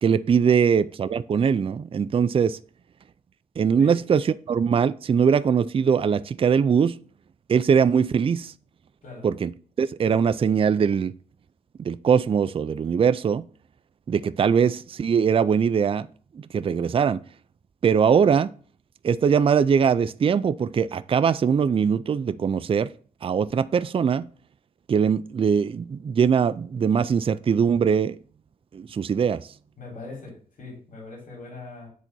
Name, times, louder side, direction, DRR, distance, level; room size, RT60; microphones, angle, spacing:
voice 1, 0.0-2.6 3.6-7.0 7.5-8.5 9.2-11.1 11.8-13.5 14.1-16.1 16.5-17.2 17.8-18.5 19.0-22.9 23.2-24.3 24.9-28.2 28.7-29.4, right 7 dB, 40° right, 0.3 m, -21 dB
voice 2, 29.8-31.9, left 3 dB, 70° left, 3.9 m, -41 dB
8.4 x 3.9 x 6.1 m
wide cardioid pair, 120°, 15 cm